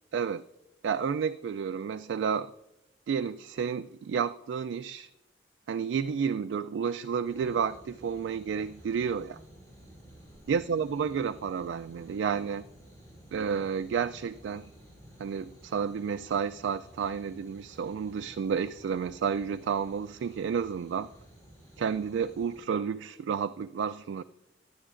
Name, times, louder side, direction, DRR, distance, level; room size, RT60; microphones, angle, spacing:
voice 1, 0.1-0.4 0.8-2.5 3.1-5.1 5.7-9.4 10.5-12.6 13.3-14.7 15.2-21.1 21.8-24.2, right 6 dB, 80° right, 9 dB, 0.3 m, -31 dB
sound 1, 7.2-22.6, right 1 dB, 20° left, 5.0 m, -53 dB
23.0 x 10.0 x 2.5 m, 0.93 s
head